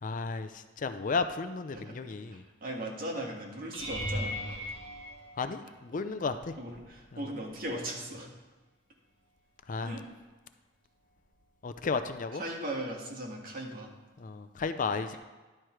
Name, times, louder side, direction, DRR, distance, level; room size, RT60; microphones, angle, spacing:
voice 1, 0.0-2.4 5.4-6.5 7.1-7.2 9.7-10.0 11.6-12.4 14.2-15.2, left 4 dB, 45° left, 10 dB, 0.5 m, -33 dB
voice 2, 2.3-4.6 6.6-8.3 9.8-10.0 12.3-13.9, right 1 dB, 50° right, 0 dB, 1.7 m, -38 dB
sound 1, 3.7-6.0 6.7-7.1 7.5-7.7 12.0-12.1, equal, 80° right, 1.8 m, -38 dB
11.0 x 6.6 x 4.5 m, 1.3 s
head